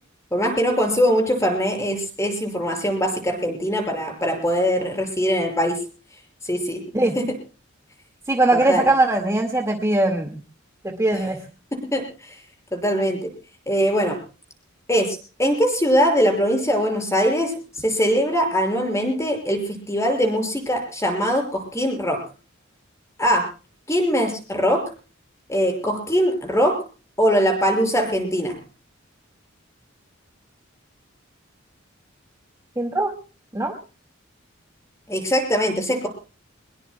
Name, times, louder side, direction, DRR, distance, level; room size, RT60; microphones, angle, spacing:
voice 1, 0.3-5.8 6.4-6.8 7.2-7.3 8.5-8.9 11.1-11.3 11.9-12.3 12.7-13.3 13.7-14.2 14.9-22.2 23.2-23.4 23.9-24.8 25.5-26.8 27.2-28.6 35.1-36.1, equal, 15° left, 4 dB, 5.6 m, -22 dB
voice 2, 8.3-10.4 10.8-11.4 32.8-33.1 33.5-33.7, right 2 dB, 15° right, 3 dB, 1.9 m, -20 dB
24.0 x 21.0 x 2.2 m, 0.35 s
head